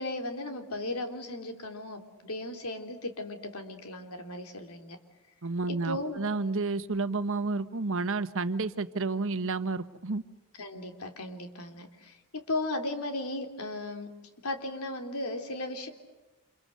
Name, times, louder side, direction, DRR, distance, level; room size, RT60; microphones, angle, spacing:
voice 1, 0.0-5.0 5.7-6.2 10.6-14.1 14.4-15.9, left 2 dB, 80° left, 6 dB, 3.5 m, -36 dB
voice 2, 5.4-10.2, right 3 dB, 65° right, 11 dB, 1.2 m, -30 dB
29.5 x 28.0 x 6.7 m, 1.1 s
head